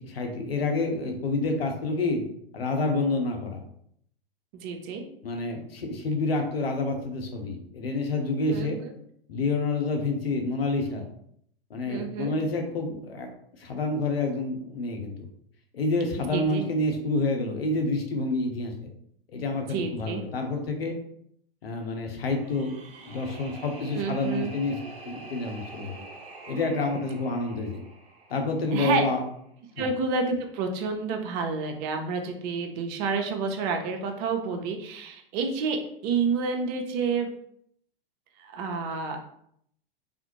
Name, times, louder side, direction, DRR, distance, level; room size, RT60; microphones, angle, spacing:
voice 1, 0.0-2.2 2.5-3.6 5.2-8.8 9.3-11.1 11.7-13.3 13.6-15.3 15.7-18.7 19.3-20.9 21.6-22.7 23.0-26.0 26.4-27.8 28.3-29.2 29.8-29.9, left 2 dB, 75° left, 3 dB, 0.8 m, -28 dB
voice 2, 4.5-5.0 8.5-8.9 11.9-12.3 16.3-16.7 19.7-20.2 23.9-24.5 27.6-27.7 28.7-29.1 29.8-37.3 38.4-39.3, right 4 dB, 40° right, 4 dB, 0.7 m, -29 dB
sound 1, 22.3-29.3, right 3 dB, 70° right, 1.1 m, -46 dB
3.5 x 2.5 x 3.0 m, 0.68 s
figure-of-eight pair, 100°, 30 cm